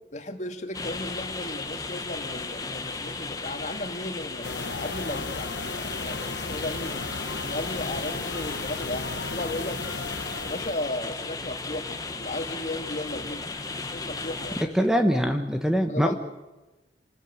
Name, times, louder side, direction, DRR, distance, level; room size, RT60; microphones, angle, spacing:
voice 1, 0.1-7.0 7.4-9.8 10.4-14.7 15.9-16.1, left 1 dB, 40° left, 5 dB, 2.2 m, -35 dB
sound 1, 0.7-14.6, left 3 dB, 20° left, 1.4 m, -35 dB
sound 2, 4.4-10.8, left 4 dB, 80° left, 1.3 m, -35 dB
voice 2, 14.7-16.1, equal, 5° right, 6 dB, 1.2 m, -23 dB
28.0 x 13.0 x 7.9 m, 1.1 s
head